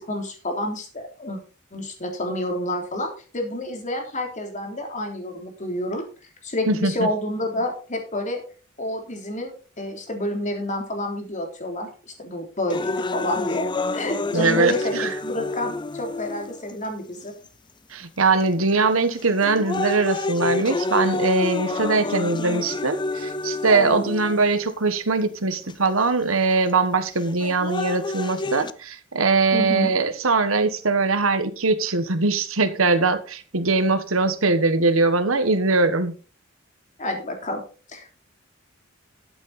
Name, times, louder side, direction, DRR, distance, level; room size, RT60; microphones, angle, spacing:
voice 1, 0.0-1.4 1.7-6.0 6.4-8.4 8.8-13.7 13.9-17.3 23.7-24.1 29.5-29.9 37.0-37.6 37.9-38.1, left 1 dB, 40° left, 3.4 m, -29 dB
voice 2, 6.7-7.1 14.3-15.1 17.9-36.1, right 3 dB, 80° right, 1.4 m, -21 dB
sound 1, 12.7-16.7 17.5-17.6 18.4-18.7 19.2-24.7 25.7-25.8 27.2-28.7, left 3 dB, 20° left, 0.5 m, -28 dB
12.5 x 8.4 x 4.2 m
head